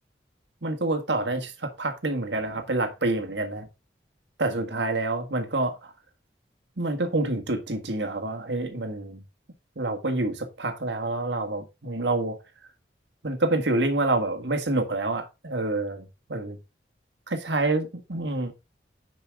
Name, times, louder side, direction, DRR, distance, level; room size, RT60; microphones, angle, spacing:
voice 1, 0.6-3.7 4.4-5.8 6.8-9.2 9.7-12.4 13.2-16.6 17.3-18.5, right 2 dB, 80° right, 1.7 m, -27 dB
9.8 x 5.4 x 3.6 m
head